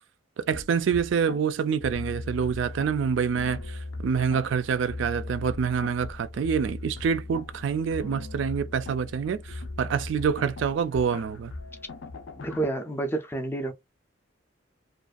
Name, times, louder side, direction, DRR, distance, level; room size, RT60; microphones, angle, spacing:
voice 1, 0.4-11.5, right 6 dB, 70° right, 0.3 m, -27 dB
sound 1, 0.5-12.6, left 2 dB, 75° left, 0.4 m, -39 dB
voice 2, 12.4-13.7, right 2 dB, 10° left, 0.3 m, -29 dB
2.5 x 2.2 x 2.3 m
head